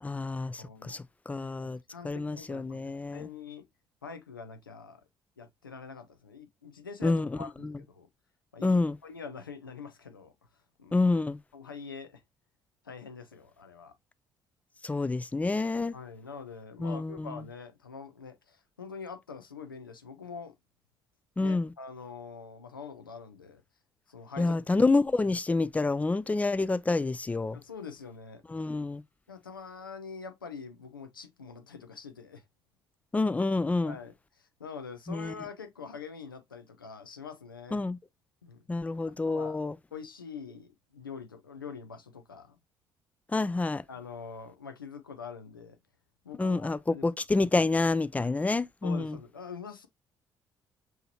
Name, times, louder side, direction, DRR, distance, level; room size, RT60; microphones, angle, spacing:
voice 1, 0.0-1.8 2.0-3.3 7.0-7.3 7.6-7.7 8.6-9.0 10.9-11.4 14.8-15.9 16.8-17.4 21.4-21.7 24.4-27.6 28.5-29.0 33.1-34.0 35.1-35.3 37.7-38.0 38.7-39.7 43.3-43.8 46.4-46.8 47.0-49.2, left 3 dB, 15° left, 0.3 m, -28 dB
voice 2, 0.6-1.1 1.3-3.7 4.0-5.0 5.4-8.1 8.5-10.3 10.8-11.2 11.5-12.2 12.8-13.9 15.9-20.5 21.4-23.6 24.1-24.6 25.3-25.4 27.5-28.4 29.3-32.4 33.8-37.8 38.4-38.6 39.3-39.6 39.9-42.6 43.9-45.8 46.2-47.1 48.8-49.9, left 5 dB, 85° left, 0.4 m, -44 dB
5.6 x 2.9 x 2.8 m
figure-of-eight pair, 45°, 11 cm